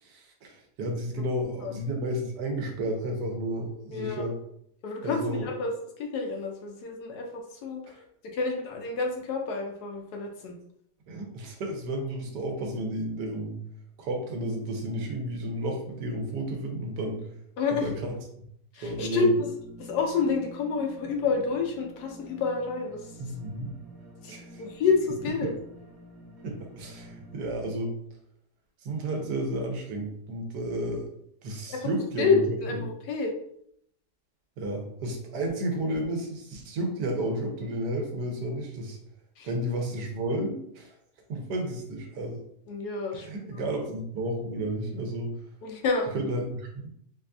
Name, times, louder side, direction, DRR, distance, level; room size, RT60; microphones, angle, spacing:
voice 1, 0.0-4.4 5.0-5.5 8.0-8.1 11.1-13.6 14.0-17.3 17.7-18.2 18.8-19.3 23.2-23.7 24.3-24.6 25.4-25.5 26.4-27.9 28.8-31.1 31.4-32.4 32.7-32.8 34.6-39.0 39.4-41.0 41.3-42.4 43.1-45.3 46.1-46.9, right 1 dB, 75° right, 2 dB, 1.3 m, -32 dB
voice 2, 3.9-4.3 4.8-8.0 8.3-10.5 17.6-17.9 18.7-19.5 19.8-23.3 24.2-25.5 31.7-31.9 32.2-33.3 39.4-39.5 42.7-43.6 45.6-46.1, left 4 dB, 75° left, 1 dB, 1.1 m, -29 dB
sound 1, 19.3-27.7, right 1 dB, 25° right, 1.1 m, -48 dB
4.1 x 2.5 x 2.2 m, 0.70 s
omnidirectional pair, 1.9 m